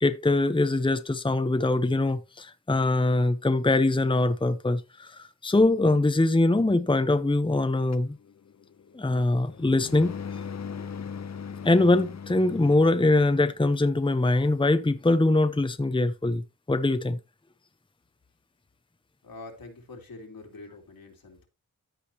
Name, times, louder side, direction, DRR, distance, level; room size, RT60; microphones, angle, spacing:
voice 1, 0.0-8.2 8.9-10.2 11.6-17.2, left 2 dB, 15° left, 0.9 m, -23 dB
sound 1, 7.9-13.5, left 6 dB, 50° left, 0.8 m, -40 dB
voice 2, 19.2-21.5, left 3 dB, 75° left, 3.1 m, -45 dB
14.0 x 5.1 x 2.9 m
cardioid pair, 50°, 35 cm